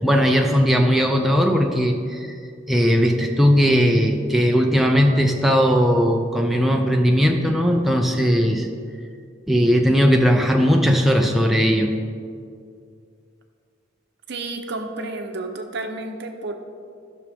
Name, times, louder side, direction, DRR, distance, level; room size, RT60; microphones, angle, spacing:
voice 1, 0.0-2.3 2.7-8.7 9.5-11.9, equal, ahead, 1 dB, 0.5 m, -18 dB
voice 2, 14.3-16.5, right 2 dB, 60° right, 4 dB, 0.8 m, -31 dB
14.5 x 6.1 x 3.5 m, 2.3 s
head